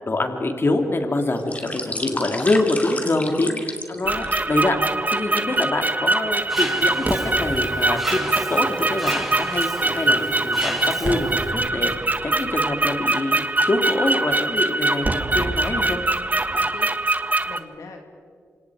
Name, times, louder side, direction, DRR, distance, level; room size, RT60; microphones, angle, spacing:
voice 1, 0.0-3.5 3.9-4.8 5.1-16.0, left 2 dB, 45° left, 5 dB, 2.7 m, -25 dB
sound 1, 1.3-4.8 5.3-5.5 6.3-7.0 7.6-10.4 10.7-10.8 11.3-11.4 11.9-12.1 12.9-13.4 14.0-14.2 14.5-15.1 15.4-15.5, left 1 dB, 25° left, 2.8 m, -34 dB
voice 2, 1.4-2.3 3.3-3.6 16.5-16.9 17.4-18.2, left 4 dB, 85° left, 3 dB, 2.4 m, -41 dB
sound 2, 4.1-17.6, right 2 dB, 30° right, 1.3 m, -23 dB
Mechanisms, 6.5-11.5, equal, ahead, 5.5 m, -32 dB
28.0 x 25.5 x 4.9 m, 2.2 s
cardioid pair, 55°, 5 cm